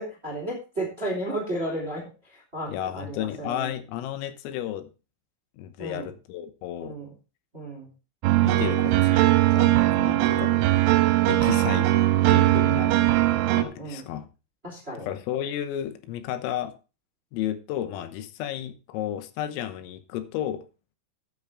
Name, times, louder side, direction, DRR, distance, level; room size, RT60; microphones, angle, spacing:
voice 1, 0.0-2.0 2.3-3.7 5.8-6.1 6.8-7.1 7.5-7.9 13.8-14.0 14.6-15.1, right 1 dB, 20° right, 1.7 m, -33 dB
voice 2, 2.7-4.9 5.6-6.9 8.4-10.8 11.3-11.9 12.3-13.1 13.5-14.3 15.0-16.8 17.3-20.6, left 11 dB, 85° left, 3.7 m, -33 dB
sound 1, 8.2-13.6, right 16 dB, 80° right, 3.2 m, -20 dB
13.0 x 9.4 x 3.5 m
omnidirectional pair, 6.0 m